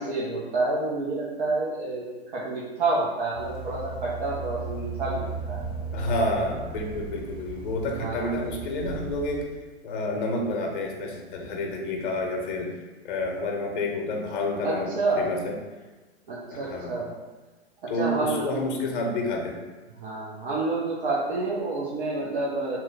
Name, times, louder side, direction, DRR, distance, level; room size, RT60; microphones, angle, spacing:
voice 1, 0.0-2.1 2.3-5.6 8.0-8.3 14.6-15.3 16.3-17.1 17.8-18.5 20.0-22.8, right 2 dB, 55° right, -6 dB, 0.6 m, -28 dB
sound 1, 3.3-9.4, right 4 dB, 15° right, 0.3 m, -36 dB
voice 2, 5.9-9.5 9.8-15.6 16.5-17.0 17.9-19.6, left 2 dB, 50° left, 2 dB, 0.7 m, -29 dB
2.9 x 2.1 x 3.5 m, 1.2 s
hypercardioid pair, 115°, 33 cm